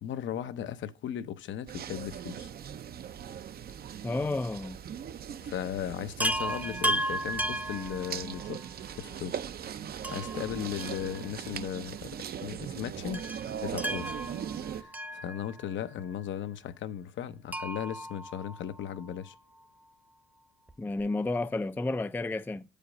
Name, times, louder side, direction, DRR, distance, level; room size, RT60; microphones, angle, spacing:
voice 1, 0.0-2.5 5.4-8.6 8.9-9.4 10.1-13.2 13.6-14.1 14.8-19.3, left 10 dB, 70° left, 0.7 m, -37 dB
sound 1, 1.7-14.8, right 9 dB, 50° right, 0.5 m, -40 dB
voice 2, 4.0-4.8 20.8-22.6, left 2 dB, 10° left, 0.4 m, -31 dB
Chime, 6.2-8.6 10.0-11.6 11.8-11.9 13.1-15.8 17.5-19.1 20.7-20.8 21.0-21.1, right 1 dB, 10° right, 0.7 m, -35 dB
7.5 x 5.1 x 5.0 m
cardioid pair, 90°, 20 cm